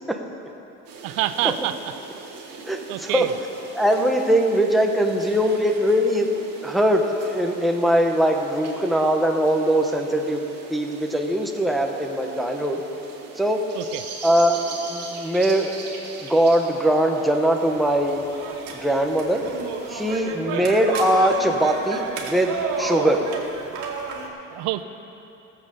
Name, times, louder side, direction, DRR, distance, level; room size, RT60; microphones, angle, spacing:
sound 1, 0.9-20.2, right 4 dB, 50° right, 2.4 m, -41 dB
voice 1, 1.0-1.9 2.4-3.4 13.7-14.0 20.5-20.7 21.7-21.9 24.5-24.8, right 14 dB, 90° right, 11 dB, 0.7 m, -28 dB
voice 2, 2.7-3.3 3.8-6.3 6.6-10.4 10.7-12.8 13.4-13.6 14.2-14.6 14.9-15.7 16.2-18.2 18.7-19.4 19.9-23.2, right 1 dB, ahead, 2 dB, 0.8 m, -21 dB
sound 2, 17.7-24.3, right 4 dB, 65° right, 2.2 m, -31 dB
16.5 x 7.6 x 6.8 m, 2.9 s
cardioid pair, 145°, 32 cm